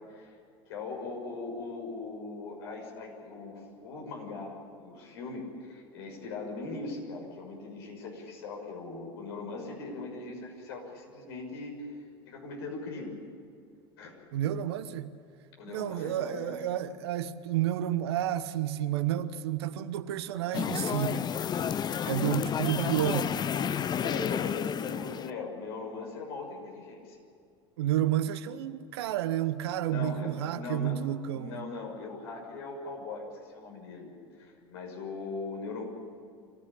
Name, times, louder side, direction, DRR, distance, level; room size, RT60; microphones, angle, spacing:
voice 1, 0.7-11.9 12.3-13.1 14.0-14.2 15.6-16.6 24.0-27.2 29.9-31.0 31.3-35.8, left 3 dB, 70° left, 6.5 m, -40 dB
voice 2, 14.3-15.1 15.7-21.3 22.0-23.5 27.8-31.6, right 11 dB, 70° right, 1.1 m, -30 dB
sound 1, 20.5-25.3, left 8 dB, 30° left, 0.7 m, -31 dB
26.0 x 16.0 x 8.8 m
hypercardioid pair, 80°, 14 cm